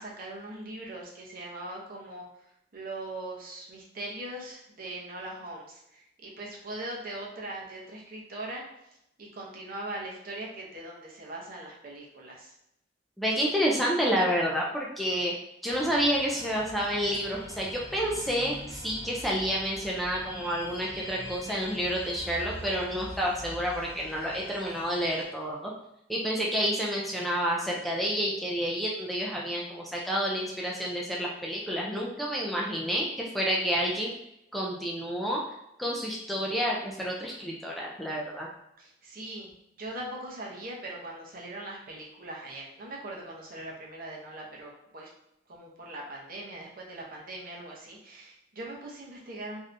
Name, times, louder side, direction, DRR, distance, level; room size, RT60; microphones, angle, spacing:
voice 1, 0.0-2.3 2.7-8.7 9.2-12.5 38.8-39.5 39.8-45.1 45.5-49.6, right 1 dB, 55° right, -2 dB, 0.7 m, -40 dB
voice 2, 13.2-15.3 15.6-25.7 26.1-34.1 34.5-35.4 35.8-38.5, equal, ahead, -3 dB, 0.4 m, -29 dB
sound 1, 15.7-25.2, equal, 30° left, 1.0 m, -44 dB
3.3 x 2.7 x 2.5 m, 0.81 s
head